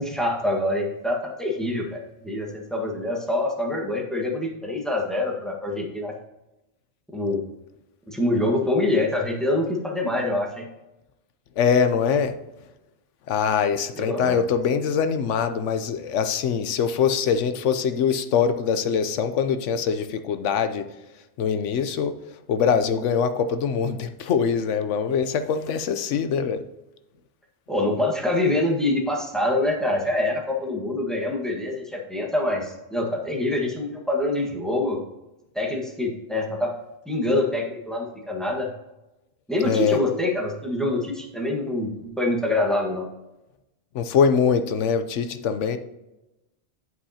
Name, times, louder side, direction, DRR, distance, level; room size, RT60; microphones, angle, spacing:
voice 1, 0.0-6.1 7.1-7.4 8.1-10.7 14.0-14.4 27.7-35.0 35.5-36.7 37.0-38.7 39.5-43.1, left 1 dB, ahead, -1 dB, 1.3 m, -25 dB
voice 2, 11.6-12.3 13.3-20.9 21.4-22.2 22.5-26.6 39.6-40.0 43.9-45.8, left 6 dB, 85° left, 9 dB, 1.0 m, -23 dB
8.2 x 7.8 x 2.8 m, 0.97 s
omnidirectional pair, 1.2 m